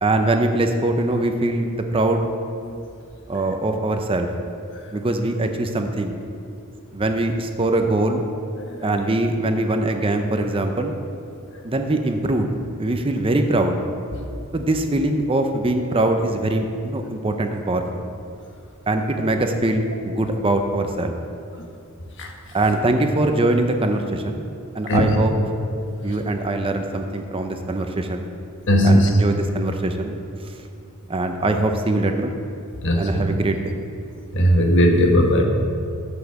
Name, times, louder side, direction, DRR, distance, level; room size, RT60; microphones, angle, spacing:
voice 1, 0.0-2.3 3.3-4.3 4.9-6.2 6.9-8.2 8.8-11.0 11.6-12.5 12.8-13.8 14.5-18.1 18.9-21.2 22.5-24.4 24.7-25.3 26.0-28.3 28.8-30.1 31.1-32.3 33.0-33.7, right 2 dB, 25° right, 5 dB, 0.6 m, -22 dB
voice 2, 28.7-29.1 32.8-33.2 34.3-35.4, equal, 60° left, 2 dB, 1.3 m, -17 dB
8.2 x 7.2 x 6.7 m, 2.5 s
head